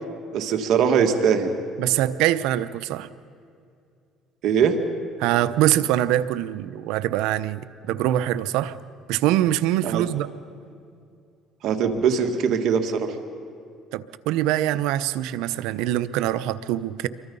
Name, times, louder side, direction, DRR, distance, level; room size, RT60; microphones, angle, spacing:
voice 1, 0.3-1.5 4.4-4.8 9.8-10.0 11.6-13.1, right 7 dB, 65° right, 5 dB, 1.9 m, -21 dB
voice 2, 1.8-3.1 5.2-8.7 9.1-10.3 13.9-17.1, right 13 dB, 85° right, 13 dB, 0.8 m, -23 dB
28.0 x 24.0 x 5.5 m, 2.5 s
cardioid pair, 100°, 0 cm